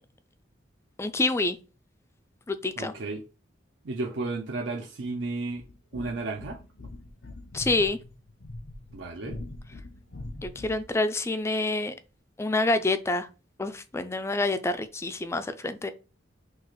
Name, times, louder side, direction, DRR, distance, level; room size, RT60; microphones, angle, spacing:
voice 1, 1.0-1.6 2.5-2.9 7.5-8.0 10.4-11.9 12.4-13.3 13.6-15.9, left 2 dB, 15° left, 0.3 m, -27 dB
voice 2, 2.8-3.2 3.8-5.6 5.9-6.6 8.9-9.4, right 3 dB, 70° right, 0.5 m, -33 dB
sound 1, 5.6-10.9, left 2 dB, 70° left, 0.7 m, -42 dB
6.1 x 2.4 x 3.1 m
head